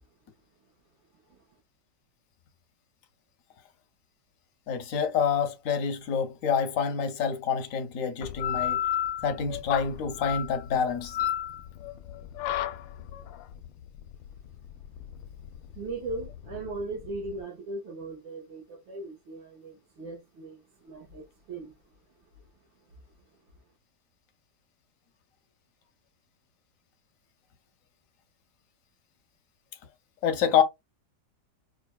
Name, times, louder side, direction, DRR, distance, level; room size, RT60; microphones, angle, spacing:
voice 1, 4.7-8.8 9.2-11.2 30.2-30.6, left 7 dB, 65° left, 0.8 m, -27 dB
sound 1, 8.2-17.4, left 11 dB, 80° left, 1.3 m, -33 dB
voice 2, 15.7-21.9, right 2 dB, 85° right, 2.3 m, -38 dB
4.8 x 2.5 x 2.3 m
omnidirectional pair, 2.0 m